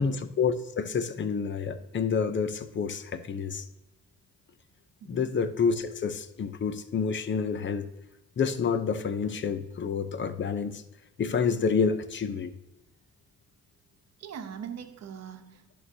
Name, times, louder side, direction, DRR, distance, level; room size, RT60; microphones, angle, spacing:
voice 1, 0.0-3.6 5.1-7.9 8.4-10.8 11.2-12.5, left 5 dB, 40° left, 11 dB, 0.7 m, -28 dB
voice 2, 5.0-5.3 14.2-15.8, right 8 dB, 60° right, 7 dB, 1.0 m, -42 dB
10.5 x 6.3 x 2.8 m, 1.0 s
cardioid pair, 90°, 30 cm